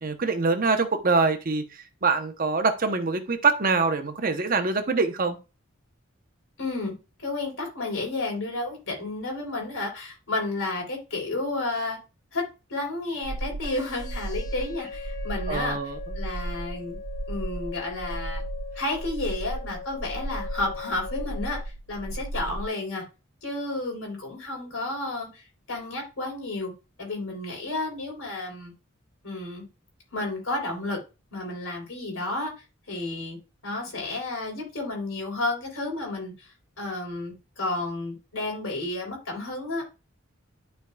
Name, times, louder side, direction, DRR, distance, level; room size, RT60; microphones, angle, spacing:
voice 1, 0.0-5.4 15.5-16.0, right 4 dB, 45° right, 0.8 m, -24 dB
voice 2, 6.6-6.9 7.2-12.0 12.3-15.8 16.2-17.0 17.3-18.4 18.8-21.6 21.9-23.0 23.4-26.7 27.0-28.7 29.2-29.7 30.1-31.0 31.3-32.5 32.9-33.4 33.6-36.5 36.8-39.8, left 2 dB, 75° left, 3.6 m, -31 dB
sound 1, 13.2-22.7, right 2 dB, 85° right, 0.7 m, -35 dB
sound 2, 13.6-21.6, left 6 dB, 40° left, 1.2 m, -40 dB
12.0 x 4.4 x 2.3 m
head